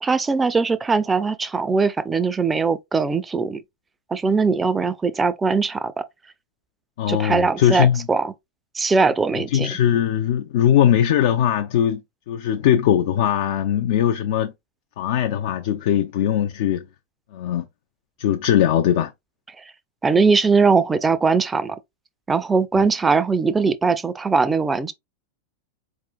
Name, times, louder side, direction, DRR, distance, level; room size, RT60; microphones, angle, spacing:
voice 1, 0.0-3.6 4.1-6.0 7.1-8.3 8.7-9.7 20.0-21.8 22.3-24.9, right 4 dB, 15° right, 0.4 m, -20 dB
voice 2, 7.0-8.0 9.4-12.0 12.3-14.5 15.0-16.8 17.3-17.6 18.2-19.1, left 10 dB, 50° left, 0.4 m, -20 dB
4.2 x 3.6 x 2.4 m
figure-of-eight pair, 90°, 0 cm